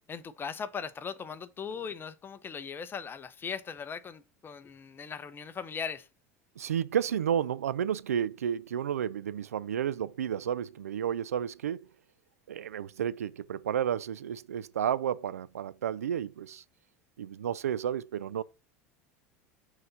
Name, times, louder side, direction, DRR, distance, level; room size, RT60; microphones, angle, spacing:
voice 1, 0.1-6.1, left 6 dB, 25° left, 0.9 m, -39 dB
voice 2, 6.6-11.9 12.5-16.6 17.2-18.4, right 9 dB, 90° right, 0.4 m, -31 dB
6.6 x 4.1 x 5.6 m
hypercardioid pair, 85°, 8 cm